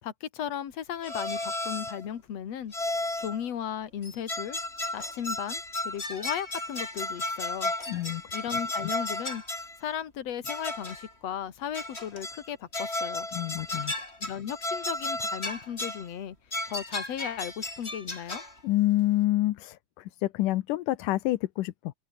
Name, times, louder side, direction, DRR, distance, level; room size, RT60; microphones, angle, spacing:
voice 1, 0.0-2.7 3.2-4.6 4.9-7.7 8.3-9.4 9.8-13.3 14.2-16.4 16.7-18.4, left 9 dB, 55° left, 3.0 m, -36 dB
sound 1, 1.0-2.0 2.7-3.4 4.0-9.8 10.4-11.1 11.7-12.5 12.7-16.1 16.5-18.6, left 2 dB, 20° left, 5.2 m, -34 dB
voice 2, 7.9-8.2 13.3-13.9 18.6-21.9, left 16 dB, 85° left, 2.5 m, -27 dB
open air
omnidirectional pair, 3.6 m